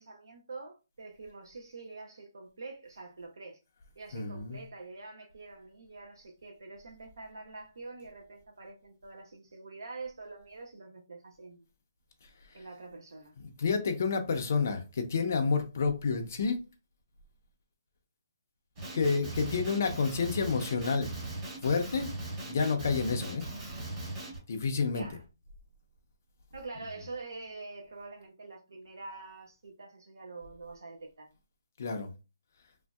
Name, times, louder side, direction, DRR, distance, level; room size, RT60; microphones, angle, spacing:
voice 1, 0.0-3.6 4.0-11.6 12.5-13.3 24.9-25.2 26.5-31.3, right 3 dB, 70° right, 0.7 m, -46 dB
voice 2, 4.1-4.6 13.4-16.6 18.9-21.1 21.6-22.1 22.4-23.4 24.5-25.0 31.8-32.1, left 5 dB, 35° left, 0.4 m, -29 dB
Male speech man speaking, 18.8-24.4, right 2 dB, 20° right, 1.0 m, -39 dB
3.0 x 2.6 x 2.3 m
hypercardioid pair, 180°, 2 cm